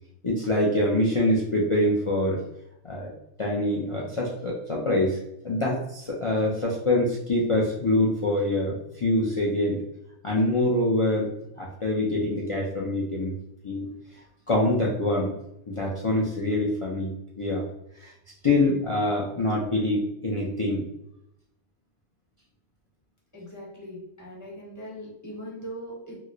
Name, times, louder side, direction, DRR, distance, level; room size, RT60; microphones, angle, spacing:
voice 1, 0.2-2.4 2.8-3.1 3.4-5.2 5.4-9.8 10.2-11.3 11.6-13.3 13.6-13.9 14.5-15.3 15.7-17.6 18.0-18.1 18.4-20.8, left 1 dB, 55° left, -4 dB, 0.3 m, -25 dB
voice 2, 23.3-26.2, equal, 15° left, -6 dB, 1.1 m, -40 dB
2.9 x 2.1 x 3.7 m, 0.83 s
omnidirectional pair, 1.3 m